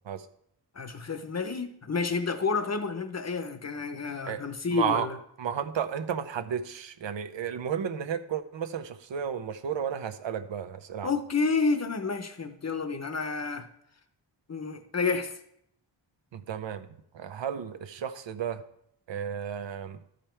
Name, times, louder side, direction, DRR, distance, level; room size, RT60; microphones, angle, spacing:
voice 1, 0.7-5.2 11.0-13.7 14.5-15.4, left 4 dB, 35° left, 9 dB, 0.7 m, -30 dB
voice 2, 4.7-5.1 5.4-11.1 16.3-16.9 17.1-18.6 19.1-20.0, right 8 dB, 75° right, 9 dB, 0.7 m, -33 dB
12.5 x 5.2 x 4.4 m, 0.72 s
wide cardioid pair, 155°, 45 cm